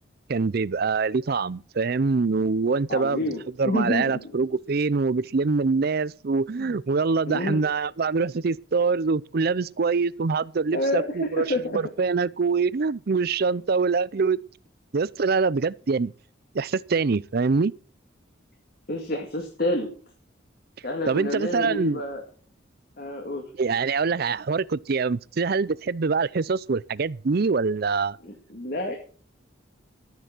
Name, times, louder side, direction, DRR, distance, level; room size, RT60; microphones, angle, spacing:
voice 1, 0.3-3.3 3.6-11.5 11.7-14.4 14.9-16.1 16.5-17.7 21.1-22.0 23.6-28.2, right 4 dB, 50° right, 0.5 m, -24 dB
voice 2, 2.9-4.2 7.3-7.6 10.7-11.8 18.9-19.9 20.8-22.2 23.0-23.4 28.2-29.0, left 1 dB, 50° left, 2.1 m, -28 dB
13.0 x 10.0 x 6.0 m
head